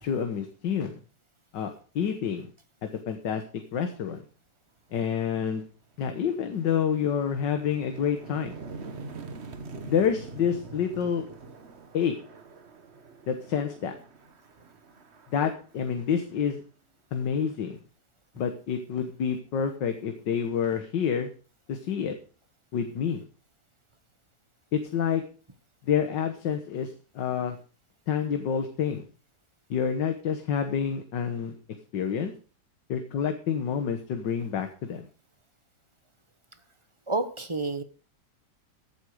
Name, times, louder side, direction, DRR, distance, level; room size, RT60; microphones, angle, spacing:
voice 1, 0.0-1.0 1.5-2.5 2.8-4.2 4.9-5.6 6.0-8.5 9.8-11.3 11.9-12.1 13.3-13.9 15.3-16.6 17.1-17.8 18.4-21.3 21.7-22.2 22.7-23.2 24.7-25.2 25.8-27.6 28.1-29.0 29.7-31.6 31.9-32.3 32.9-35.1, left 7 dB, 85° left, 6 dB, 1.9 m, -28 dB
sound 1, 5.8-16.6, right 4 dB, 40° right, 1.4 m, -45 dB
voice 2, 37.1-37.8, right 3 dB, 25° right, 10 dB, 0.8 m, -29 dB
14.5 x 9.0 x 4.9 m, 0.38 s
omnidirectional pair, 1.9 m